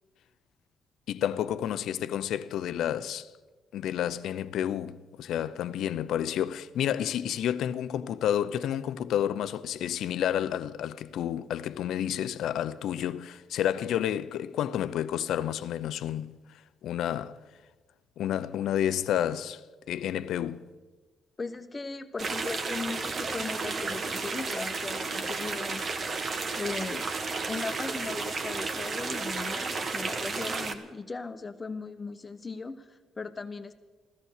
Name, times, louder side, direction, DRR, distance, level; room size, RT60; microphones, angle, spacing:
voice 1, 1.1-3.3 3.7-16.4 16.8-17.4 18.2-19.6 19.9-20.6, left 10 dB, 80° left, 0.6 m, -30 dB
voice 2, 21.4-25.9 26.6-27.1 27.5-33.7, left 4 dB, 25° left, 1.0 m, -38 dB
sound 1, 22.2-30.7, right 4 dB, 45° right, 1.2 m, -32 dB
15.0 x 13.5 x 6.6 m
cardioid pair, 90°, 0 cm